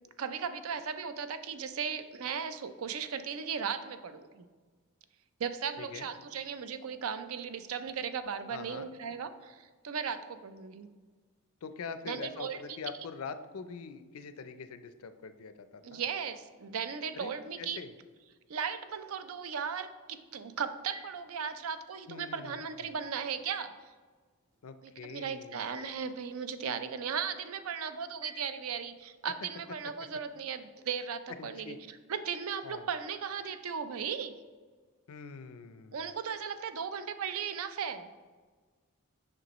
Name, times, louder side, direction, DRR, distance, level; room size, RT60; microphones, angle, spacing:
voice 1, 0.2-4.5 5.4-10.9 12.1-12.8 15.8-17.8 18.5-23.7 24.8-34.4 35.9-38.1, right 6 dB, 75° right, 11 dB, 0.5 m, -37 dB
voice 2, 5.8-6.1 8.5-8.9 11.6-16.0 17.1-17.9 22.1-23.0 24.6-25.7 31.4-31.8 32.6-32.9 35.1-36.0, left 5 dB, 75° left, 11 dB, 0.5 m, -44 dB
Telephone, 20.2-29.1, right 1 dB, 15° right, 0.9 m, -57 dB
7.7 x 5.9 x 3.0 m, 1.4 s
head